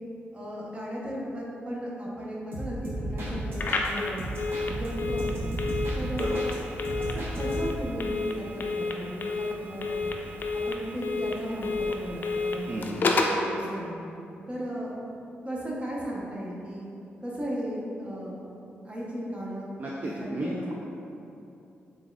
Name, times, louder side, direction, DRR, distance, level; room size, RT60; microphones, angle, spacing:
voice 1, 0.3-4.2 4.8-5.5 6.0-6.5 7.0-10.0 10.5-13.2 13.4-14.0 14.5-15.1 15.4-16.9 17.2-18.5 18.8-19.7 20.0-20.7, equal, 25° right, -5 dB, 0.9 m, -36 dB
sound 1, 2.5-3.9 4.2-6.6 6.8-7.9, right 1 dB, 60° right, 0.8 m, -33 dB
Telephone, 3.5-13.4, left 3 dB, 50° left, 0.4 m, -31 dB
voice 2, 12.7-13.0 19.8-20.7, right 1 dB, 45° right, -3 dB, 0.4 m, -33 dB
4.0 x 3.6 x 2.3 m, 2.8 s
cardioid pair, 75°, 4 cm